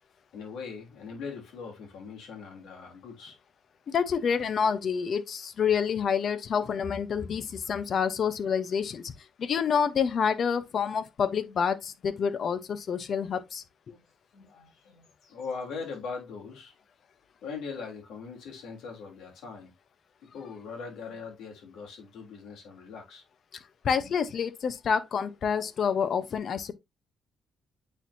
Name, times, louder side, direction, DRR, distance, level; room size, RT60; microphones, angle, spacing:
voice 1, 0.3-3.3 7.1-7.2 11.4-11.6 13.9-14.0 14.3-16.7 17.4-19.7 20.3-23.2 24.0-24.1, left 5 dB, 80° left, 3.3 m, -41 dB
voice 2, 3.9-9.1 9.4-13.6 23.8-26.7, left 7 dB, 55° left, 0.9 m, -28 dB
8.8 x 4.6 x 2.8 m
cardioid pair, 90°, 0 cm